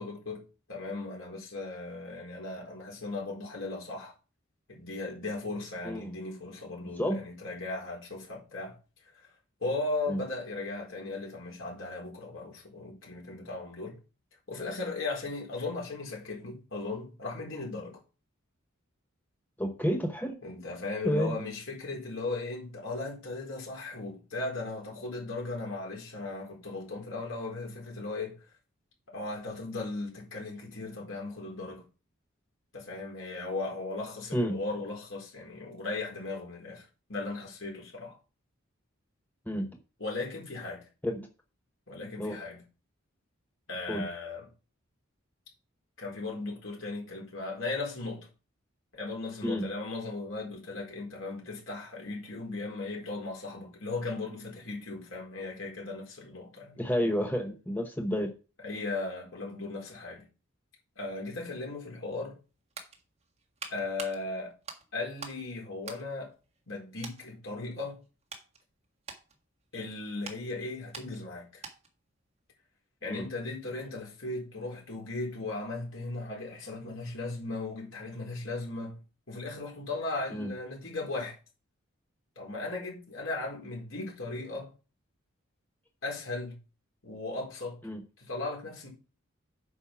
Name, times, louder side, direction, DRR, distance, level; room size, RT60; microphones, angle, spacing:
voice 1, 0.0-4.1 4.7-8.8 9.6-14.0 14.5-18.0 20.4-28.4 29.1-31.8 32.7-38.2 40.0-40.8 41.9-42.6 43.7-44.5 46.0-48.3 48.9-56.8 58.6-60.2 61.0-62.4 63.7-64.5 64.9-66.3 66.7-68.0 69.7-71.6 73.0-79.0 79.3-81.3 82.4-84.7 86.0-86.6 87.0-87.8 88.2-88.9, left 3 dB, 75° left, 4.2 m, -37 dB
voice 2, 19.6-20.4 21.0-21.3 34.3-34.6 39.5-39.7 41.0-41.3 42.2-42.4 43.9-44.1 49.4-49.7 56.8-58.3 73.1-73.3 80.3-80.5 87.8-88.0, equal, 10° left, 0.9 m, -30 dB
sound 1, 62.4-65.5 65.8-66.7 67.0-67.3 67.8-72.0 72.3-72.5, right 4 dB, 30° right, 1.6 m, -46 dB
8.4 x 5.3 x 5.8 m
head